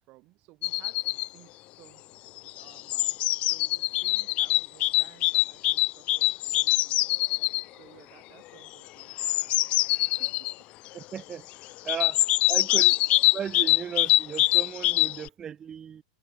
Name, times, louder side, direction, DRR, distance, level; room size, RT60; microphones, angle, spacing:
voice 1, 0.0-10.3 11.9-12.2 12.7-13.0, right 21 dB, 30° right, 1.8 m, -57 dB
sound 1, 0.6-1.3 2.4-7.6 9.0-10.5 11.9-15.3, left 18 dB, 30° left, 0.3 m, -24 dB
voice 2, 10.9-11.5 11.8-13.0 13.3-16.0, right 8 dB, 15° right, 0.8 m, -36 dB
supercardioid pair, 160°, 4 cm